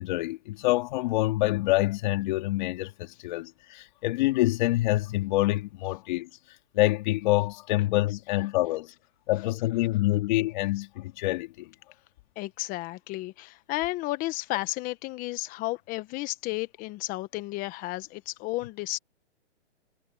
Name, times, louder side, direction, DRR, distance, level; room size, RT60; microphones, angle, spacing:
voice 1, 0.0-6.3 6.7-8.9 9.3-11.7, left 18 dB, 40° left, 2.7 m, -26 dB
voice 2, 12.4-19.0, left 19 dB, 25° left, 1.3 m, -33 dB
hypercardioid pair, 145°, 34 cm